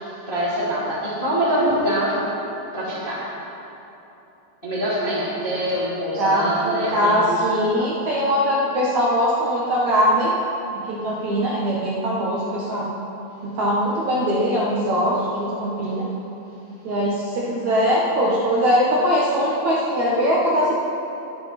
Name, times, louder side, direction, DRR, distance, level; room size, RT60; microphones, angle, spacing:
voice 1, 0.3-2.2 2.7-3.2 4.6-7.6, right 1 dB, 15° left, -9 dB, 2.1 m, -24 dB
voice 2, 6.2-10.3 10.7-12.9 13.4-16.0 16.8-20.7, equal, 70° right, -5 dB, 1.7 m, -21 dB
21.5 x 9.4 x 4.3 m, 3.0 s
omnidirectional pair, 5.2 m